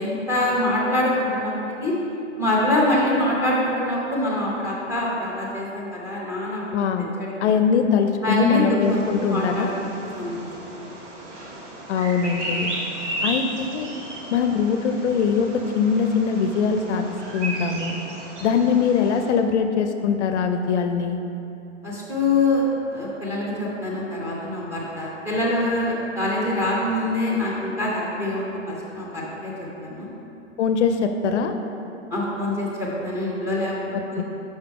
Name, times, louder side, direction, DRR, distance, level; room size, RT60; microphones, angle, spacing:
voice 1, 0.0-1.9 2.4-6.6 7.2-7.3 8.2-10.9 21.8-22.6 22.9-29.5 29.8-30.1 32.1-33.7 34.1-34.2, left 1 dB, 5° right, -4 dB, 0.9 m, -24 dB
voice 2, 6.7-7.1 7.4-9.7 11.9-12.7 13.2-13.9 14.3-17.1 17.3-18.0 18.4-21.2 30.6-31.5 33.9-34.2, left 6 dB, 65° left, 7 dB, 0.5 m, -22 dB
Bird vocalization bird call bird song, 8.8-19.3, right 1 dB, 70° right, 1.3 m, -34 dB
5.8 x 5.3 x 3.5 m, 2.9 s
hypercardioid pair, 140°, 37 cm